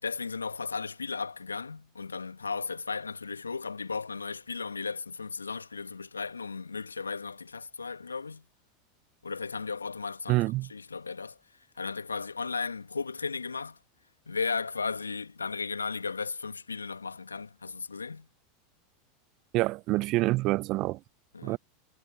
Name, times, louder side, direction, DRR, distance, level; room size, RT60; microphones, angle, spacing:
voice 1, 0.0-8.4 9.2-10.4 10.7-13.8 14.3-18.3 21.3-21.6, left 4 dB, 85° left, 2.1 m, -35 dB
voice 2, 10.3-10.7 19.5-21.0 21.4-21.6, right 20 dB, 45° right, 1.0 m, -26 dB
figure-of-eight pair, 85°, 0 cm